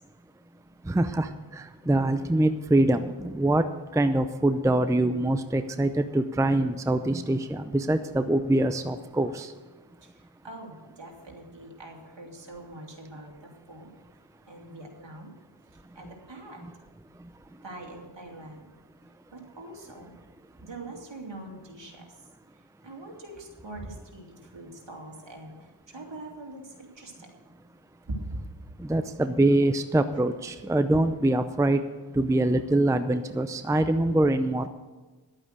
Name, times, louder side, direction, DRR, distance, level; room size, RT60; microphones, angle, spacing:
voice 1, 0.8-3.7 3.9-9.5 17.2-17.3 28.8-34.7, right 1 dB, 5° right, 9 dB, 0.6 m, -24 dB
voice 2, 10.0-13.9 14.5-15.4 15.7-16.7 17.6-18.7 19.3-20.1 20.6-22.2 22.8-27.3 28.3-28.4 28.9-29.0, right 2 dB, 60° right, 0 dB, 2.7 m, -44 dB
11.0 x 8.8 x 6.5 m, 1.3 s
wide cardioid pair, 50°, 49 cm